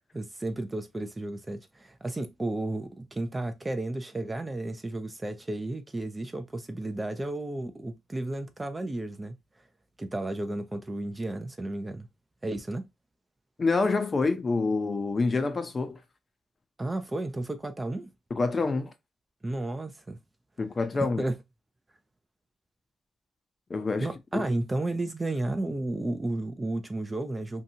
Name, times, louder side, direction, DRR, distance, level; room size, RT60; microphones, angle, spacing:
voice 1, 0.1-9.4 10.0-12.1 12.4-12.9 16.8-18.1 19.4-20.2 21.0-21.4 24.0-27.6, right 2 dB, 20° right, 0.4 m, -33 dB
voice 2, 13.6-16.0 18.3-18.9 20.6-21.2 23.7-24.5, left 3 dB, 30° left, 0.5 m, -27 dB
2.7 x 2.3 x 2.7 m
cardioid pair, 90°, 0 cm